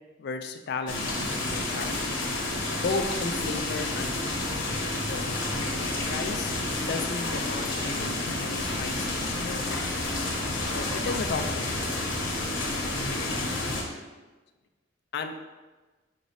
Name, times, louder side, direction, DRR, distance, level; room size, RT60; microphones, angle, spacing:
voice 1, 0.2-2.2 2.8-4.4 5.1-5.4 6.0-6.5 6.8-9.9 10.7-11.8 13.0-13.2 13.6-13.8 15.1-15.3, left 4 dB, 55° left, 7 dB, 0.3 m, -35 dB
sound 1, 0.9-13.8, left 2 dB, 75° left, 0.9 m, -30 dB
5.8 x 3.2 x 2.6 m, 1.2 s
head